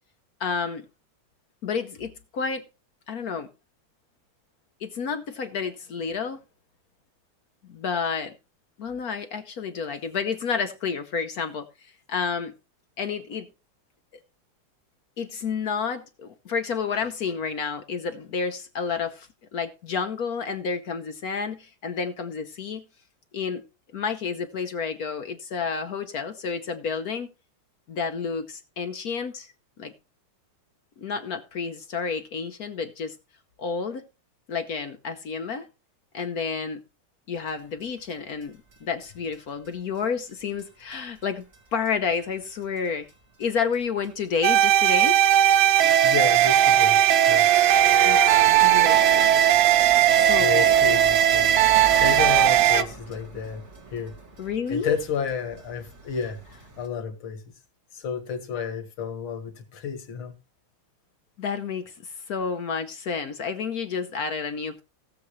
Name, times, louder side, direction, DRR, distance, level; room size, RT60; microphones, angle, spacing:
voice 1, 0.4-0.9 1.6-2.6 3.1-3.5 4.8-6.4 7.7-8.3 8.8-12.5 13.0-13.5 15.2-22.8 23.3-23.6 23.9-27.3 27.9-29.5 29.8-29.9 31.0-33.1 33.6-34.0 34.5-35.7 36.1-36.8 37.3-41.4 41.7-43.1 43.4-45.2 48.0-49.3 50.1-50.7 52.7-52.9 54.4-55.0 61.4-64.8, left 5 dB, 60° left, 1.1 m, -30 dB
sound 1, 37.8-37.9 38.1-38.2 38.4-38.5 38.7-38.8 39.0-39.1 39.3-39.4 39.6-40.0 40.3-40.4 40.6-40.7 40.9-41.2 41.5-41.6 41.9-42.5 42.8-43.1 43.4-43.5 43.7-43.8 44.0-44.1 44.3-44.4 44.6-44.7 45.0-56.9, right 2 dB, 35° right, 1.6 m, -37 dB
sound 2, 44.4-52.8, right 11 dB, 75° right, 1.4 m, -18 dB
voice 2, 46.0-47.0 47.3-47.8 50.4-51.5 52.0-53.6 53.9-54.2 54.7-56.4 56.8-57.4 57.9-60.4, left 7 dB, 75° left, 2.4 m, -31 dB
18.0 x 7.1 x 3.1 m
omnidirectional pair, 2.3 m